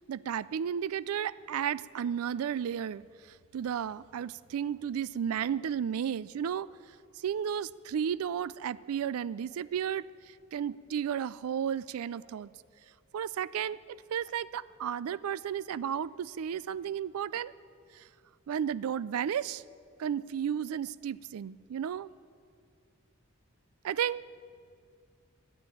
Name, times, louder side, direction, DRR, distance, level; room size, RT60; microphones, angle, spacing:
voice 1, 0.0-6.7 7.2-12.5 13.1-13.8 14.1-17.5 17.9-18.1 18.5-19.6 20.0-22.1 23.8-24.2, right 8 dB, 80° right, 19 dB, 0.3 m, -33 dB
13.0 x 9.5 x 9.0 m, 2.2 s
head